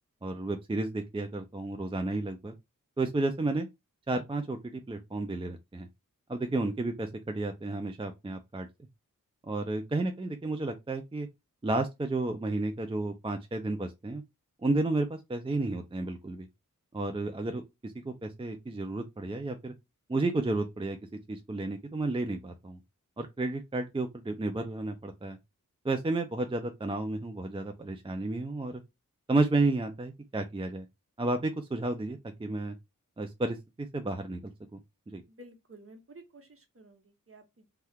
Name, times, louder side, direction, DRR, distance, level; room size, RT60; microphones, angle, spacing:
voice 1, 0.2-2.5 3.0-3.7 4.1-5.9 6.3-8.7 9.4-11.3 11.6-14.2 14.6-16.5 16.9-19.7 20.1-21.0 21.3-22.8 23.2-25.4 25.8-28.8 29.3-30.9 31.2-32.7 33.2-34.4 34.7-34.8 35.1-35.2, right 2 dB, 15° right, 0.4 m, -32 dB
voice 2, 35.3-37.7, right 1 dB, 45° right, 0.9 m, -53 dB
2.8 x 2.2 x 3.4 m
wide cardioid pair, 60°, 33 cm